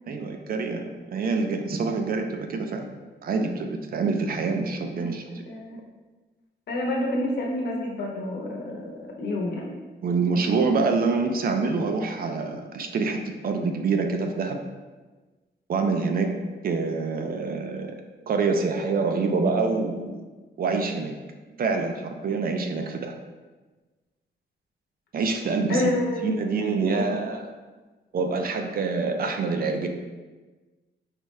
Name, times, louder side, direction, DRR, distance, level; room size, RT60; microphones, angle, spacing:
voice 1, 0.1-2.9 3.2-5.2 10.0-13.2 13.4-14.6 15.7-16.3 16.6-18.0 18.3-20.2 20.6-21.1 21.6-23.1 25.1-25.9 26.2-27.5 28.1-29.9, right 4 dB, 55° right, 4 dB, 0.5 m, -26 dB
voice 2, 4.9-5.8 6.7-9.7 25.7-26.4 26.9-27.1, left 1 dB, 65° left, -1 dB, 0.9 m, -29 dB
4.9 x 3.2 x 3.1 m, 1.3 s
wide cardioid pair, 155°, 19 cm